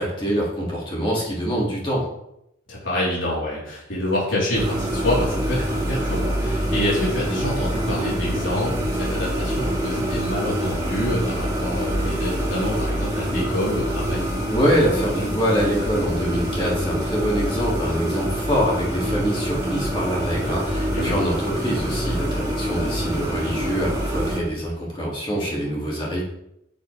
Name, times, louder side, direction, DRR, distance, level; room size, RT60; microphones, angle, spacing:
voice 1, 0.0-2.0 14.5-26.2, equal, 25° left, -4 dB, 2.3 m, -24 dB
voice 2, 2.7-14.3 20.9-21.2, left 1 dB, 80° left, -7 dB, 3.7 m, -26 dB
sound 1, 4.5-24.4, equal, 20° right, 2.4 m, -25 dB
10.0 x 7.5 x 3.3 m, 0.80 s
head